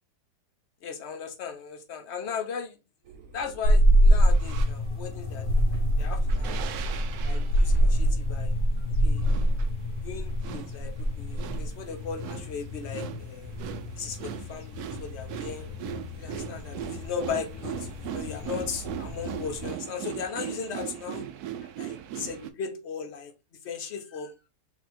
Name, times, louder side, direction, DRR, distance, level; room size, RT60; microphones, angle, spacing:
voice 1, 0.8-2.8 3.3-5.6 6.0-6.6 7.2-8.5 9.0-9.3 10.0-13.5 13.9-15.7 16.2-21.3 21.6-23.3 23.6-24.3, left 6 dB, 50° left, 1.0 m, -37 dB
sound 1, 3.0-8.1, right 4 dB, 55° right, 1.2 m, -49 dB
sound 2, 3.6-19.7, equal, 70° left, 1.3 m, -26 dB
sound 3, 4.3-4.7 5.6-22.5, right 10 dB, 75° right, 1.0 m, -39 dB
4.2 x 2.9 x 4.1 m
omnidirectional pair, 1.8 m